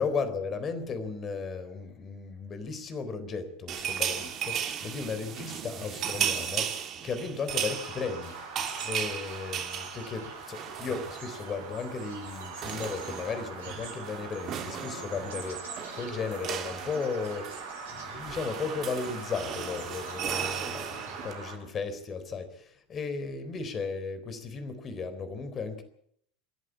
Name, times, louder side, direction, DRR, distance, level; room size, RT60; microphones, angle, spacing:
voice 1, 0.0-8.4 8.8-15.6 15.9-17.5 17.9-25.8, left 5 dB, 35° left, 10 dB, 3.9 m, -35 dB
sound 1, 3.7-11.6 11.8-12.0 12.3-21.3, right 9 dB, 45° right, 2.9 m, -36 dB
Bird vocalization bird call bird song, 7.5-21.5, right 4 dB, 70° right, 7.7 m, -42 dB
27.5 x 11.5 x 8.6 m, 0.67 s
figure-of-eight pair, 75°, 0 cm